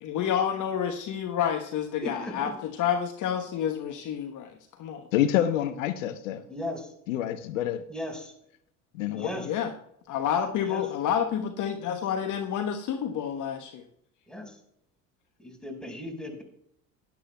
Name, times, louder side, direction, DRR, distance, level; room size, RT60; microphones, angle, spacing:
voice 1, 0.0-4.5 4.8-5.0 9.4-9.7 10.1-13.8, left 8 dB, 50° left, 5 dB, 1.1 m, -29 dB
voice 2, 2.0-2.3 6.5-6.9 7.9-8.3 9.1-9.5 10.7-10.8 14.3-14.5 15.4-16.4, left 1 dB, ahead, 2 dB, 4.8 m, -36 dB
voice 3, 5.1-6.4 7.1-7.8 8.9-9.5, left 11 dB, 75° left, 11 dB, 0.7 m, -27 dB
16.0 x 11.0 x 2.2 m, 0.71 s
hypercardioid pair, 60°, 39 cm